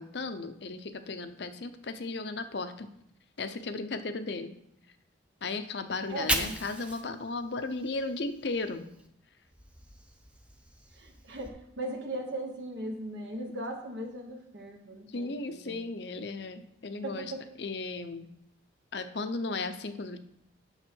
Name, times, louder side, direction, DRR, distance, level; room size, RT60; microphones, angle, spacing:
voice 1, 0.0-2.9 3.4-4.5 5.4-8.9 15.1-17.3 17.6-18.3 18.9-20.2, left 3 dB, 60° left, 9 dB, 0.7 m, -35 dB
Fire, 5.9-9.1 9.4-11.5, right 1 dB, 5° right, 0.6 m, -38 dB
voice 2, 6.1-6.6 10.9-15.8 17.0-17.5, right 1 dB, 65° right, 1 dB, 1.2 m, -38 dB
8.9 x 6.6 x 4.5 m, 0.76 s
head